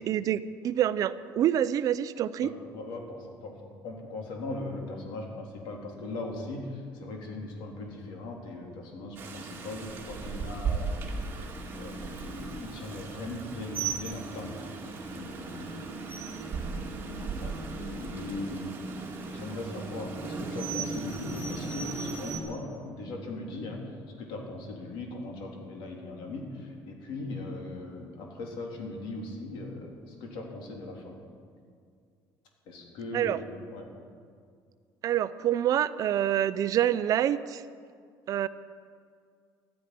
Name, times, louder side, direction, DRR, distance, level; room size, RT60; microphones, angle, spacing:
voice 1, 0.0-2.5 33.1-33.4 35.0-37.6 38.3-38.5, right 11 dB, 45° right, 15 dB, 0.5 m, -26 dB
voice 2, 2.4-11.1 11.8-14.6 15.1-15.9 16.4-18.8 19.3-23.8 24.2-31.2 32.7-33.9, left 2 dB, 70° left, 1 dB, 3.3 m, -39 dB
Rain, 9.2-22.4, right 4 dB, 25° right, 2.0 m, -36 dB
13.0 x 10.0 x 9.4 m, 2.2 s
cardioid pair, 160°, 8 cm